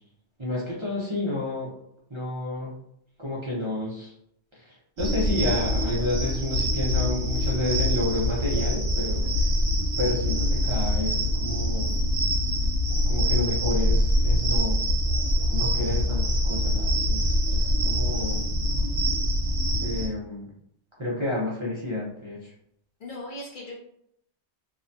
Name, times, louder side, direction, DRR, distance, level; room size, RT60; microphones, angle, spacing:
voice 1, 0.4-1.7 2.1-2.7 3.2-4.1 4.5-9.2 10.0-12.0 13.1-14.8 15.5-18.4 19.8-20.5 21.0-22.5, left 1 dB, 35° right, -7 dB, 0.5 m, -30 dB
sound 1, 5.0-20.1, equal, 65° right, 0.8 m, -24 dB
voice 2, 9.0-9.4 20.0-20.2 23.0-23.8, left 2 dB, 55° left, -2 dB, 0.6 m, -39 dB
2.7 x 2.1 x 2.6 m, 0.72 s
omnidirectional pair, 1.2 m